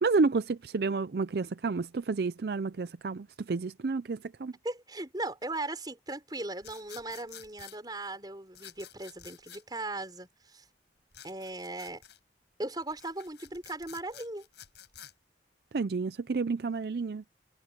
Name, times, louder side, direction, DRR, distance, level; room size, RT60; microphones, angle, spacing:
voice 1, 0.0-4.5 15.7-17.2, right 4 dB, 60° right, 0.5 m, -30 dB
voice 2, 4.6-10.6 11.2-12.0 12.6-14.4, right 2 dB, 25° right, 5.1 m, -38 dB
sound 1, 6.6-7.8 8.5-9.6 11.1-12.2 12.8-15.1, left 10 dB, 70° left, 7.5 m, -50 dB
head